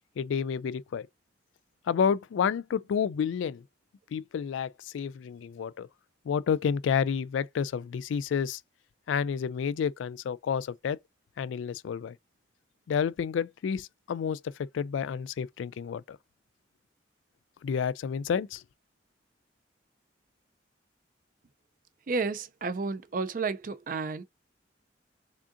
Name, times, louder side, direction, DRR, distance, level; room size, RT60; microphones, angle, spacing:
voice 1, 0.2-1.1 1.9-3.6 4.1-5.9 6.3-8.6 9.1-11.0 11.4-12.2 12.9-16.2 17.6-18.6, left 7 dB, 85° left, 0.3 m, -30 dB
voice 2, 22.1-24.2, right 4 dB, 45° right, 0.4 m, -31 dB
3.6 x 3.5 x 2.5 m
head